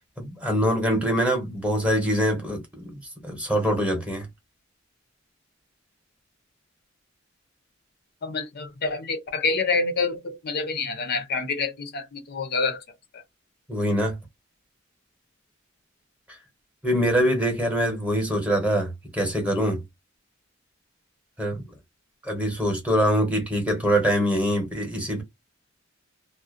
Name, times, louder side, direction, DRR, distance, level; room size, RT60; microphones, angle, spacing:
voice 1, 0.2-4.3 13.7-14.2 16.8-19.8 21.4-21.6 22.2-25.2, equal, 5° right, 0.9 m, -24 dB
voice 2, 8.2-12.8 13.1-13.2 21.5-21.6, left 4 dB, 50° left, 0.5 m, -27 dB
2.4 x 2.1 x 2.4 m
head